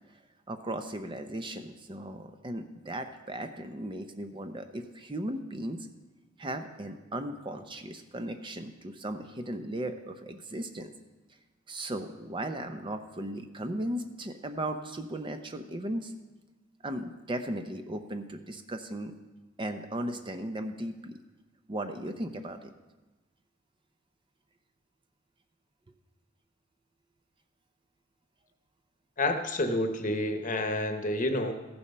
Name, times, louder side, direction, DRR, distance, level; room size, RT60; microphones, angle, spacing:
voice 1, 0.5-5.9 6.4-10.9 11.7-16.1 16.8-19.1 19.6-21.2 21.7-22.7, right 1 dB, 25° right, 7 dB, 0.6 m, -36 dB
voice 2, 29.2-31.5, left 1 dB, 40° left, 6 dB, 1.0 m, -29 dB
14.5 x 7.0 x 5.4 m, 1.1 s
head